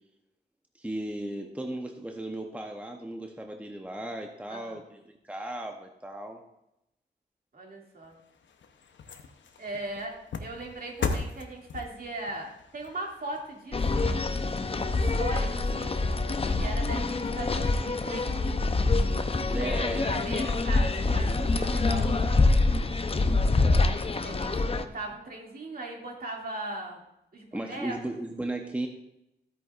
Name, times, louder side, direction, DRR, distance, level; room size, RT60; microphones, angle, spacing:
voice 1, 0.8-5.0 5.2-6.4 19.5-20.1 21.0-21.5 27.5-28.9, right 1 dB, 5° right, 3 dB, 0.8 m, -36 dB
voice 2, 4.5-4.8 7.5-8.2 9.6-14.2 14.9-16.0 16.6-18.8 19.5-22.4 24.2-27.0 27.3-28.0, right 2 dB, 50° right, 0 dB, 2.3 m, -39 dB
sound 1, 8.0-14.5 15.0-15.1, left 4 dB, 80° left, 0.8 m, -38 dB
sound 2, 13.7-24.8, left 3 dB, 30° left, 0.6 m, -26 dB
13.0 x 8.5 x 2.5 m, 0.85 s
cardioid pair, 85°, 19 cm